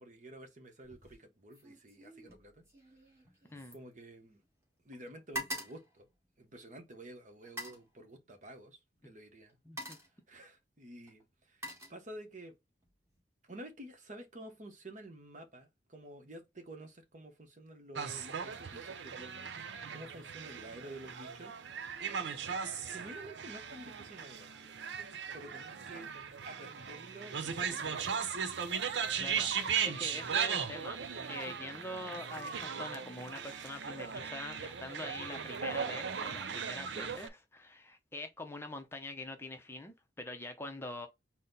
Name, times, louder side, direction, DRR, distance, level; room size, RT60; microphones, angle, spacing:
voice 1, 0.0-2.7 3.7-4.4 4.8-6.1 6.4-8.8 9.0-9.6 10.3-11.6 11.9-12.5 13.5-21.5 22.6-24.7 25.3-26.1 26.5-28.3, right 1 dB, 45° right, 1.0 m, -50 dB
sound 1, 0.8-1.2 1.5-4.6 4.9-6.8 7.4-7.9 8.9-9.1 9.5-10.2 11.1-12.5 12.8-13.2, equal, 15° right, 1.6 m, -45 dB
voice 2, 9.6-10.0 29.2-41.1, left 2 dB, 15° left, 0.6 m, -44 dB
sound 2, 18.0-37.3, right 7 dB, 90° right, 0.6 m, -38 dB
4.1 x 2.1 x 3.9 m
head